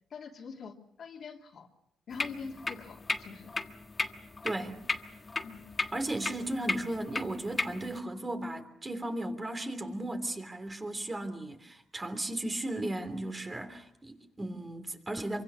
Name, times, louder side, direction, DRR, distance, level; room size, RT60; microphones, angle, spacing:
voice 1, 0.1-1.7 2.1-3.5 5.4-5.6 6.4-6.6, left 5 dB, 55° left, 2.9 m, -44 dB
sound 1, 2.1-8.0, left 3 dB, 25° left, 1.5 m, -36 dB
voice 2, 4.4-4.8 5.9-15.4, right 1 dB, 20° right, 3.2 m, -36 dB
26.0 x 24.5 x 6.3 m
cardioid pair, 90°, 0 cm